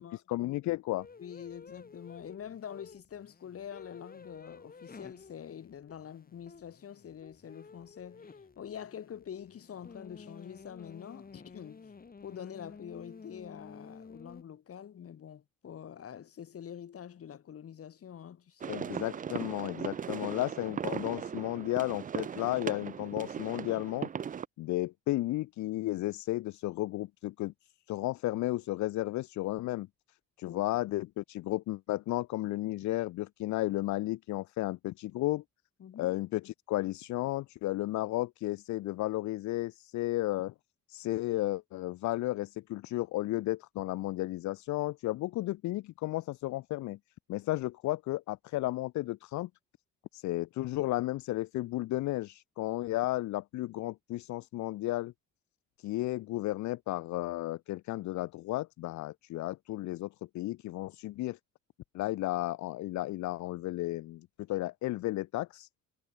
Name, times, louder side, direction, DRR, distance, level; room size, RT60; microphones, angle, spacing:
voice 1, 0.3-1.1 18.7-24.1 24.6-27.5 27.9-29.9 30.4-35.4 36.0-40.5 40.9-47.0 47.3-49.5 50.1-55.1 55.8-61.4 61.9-65.7, left 17 dB, 70° left, 0.5 m, -33 dB
sound 1, 0.9-14.4, left 4 dB, 30° left, 2.7 m, -52 dB
voice 2, 1.2-11.9 12.2-18.8 30.5-30.7 35.8-36.1, left 9 dB, 50° left, 1.6 m, -46 dB
sound 2, 18.6-24.5, right 7 dB, 30° right, 0.4 m, -38 dB
cardioid pair, 90°, 30 cm